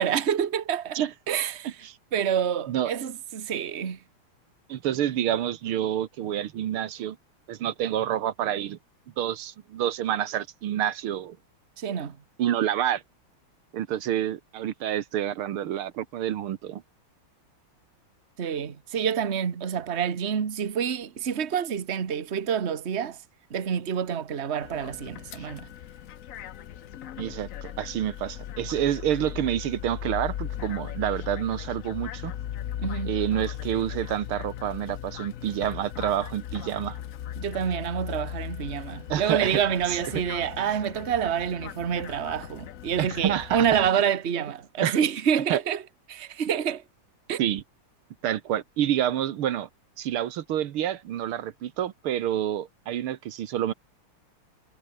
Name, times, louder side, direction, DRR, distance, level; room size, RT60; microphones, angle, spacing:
voice 1, 0.0-1.0 1.3-1.7 2.1-4.0 11.8-12.2 18.4-23.2 23.5-25.7 32.8-33.1 37.4-45.8 46.1-46.8 47.3-47.4, right 8 dB, 35° right, 1.4 m, -27 dB
voice 2, 1.6-2.0 2.7-2.9 4.7-7.2 7.5-8.8 9.2-11.4 12.4-13.0 13.7-16.8 27.2-32.3 33.1-37.0 39.1-39.6 39.9-40.0 40.6-40.8 43.0-43.7 44.8-45.0 45.5-45.6 47.4-47.6 48.2-49.7 50.0-53.7, right 11 dB, 85° right, 2.0 m, -28 dB
sound 1, 24.6-43.9, left 11 dB, 75° left, 0.7 m, -38 dB
omnidirectional pair, 2.3 m